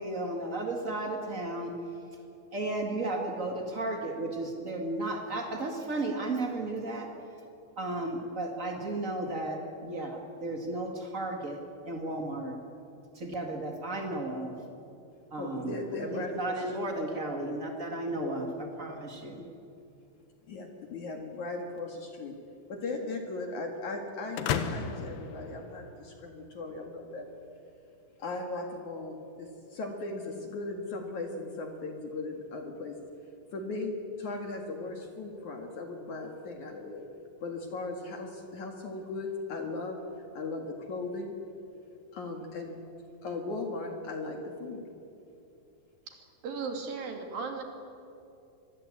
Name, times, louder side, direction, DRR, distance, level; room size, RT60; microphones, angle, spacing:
voice 1, 0.0-1.7 2.5-7.1 7.8-11.6 11.9-12.6 13.1-14.5 15.3-19.4, right 2 dB, 75° right, 2 dB, 0.7 m, -34 dB
voice 2, 15.4-17.5 18.2-18.4 20.5-22.4 22.7-27.3 28.2-33.0 33.5-37.0 37.4-40.0 40.3-41.3 42.1-42.8 43.2-44.8, left 3 dB, 50° left, 3 dB, 2.7 m, -38 dB
sound 1, 24.4-26.3, left 7 dB, 70° left, 3.1 m, -34 dB
voice 3, 46.1-47.6, right 4 dB, 55° right, 3 dB, 3.9 m, -37 dB
25.5 x 21.0 x 8.6 m, 2.7 s
omnidirectional pair, 5.3 m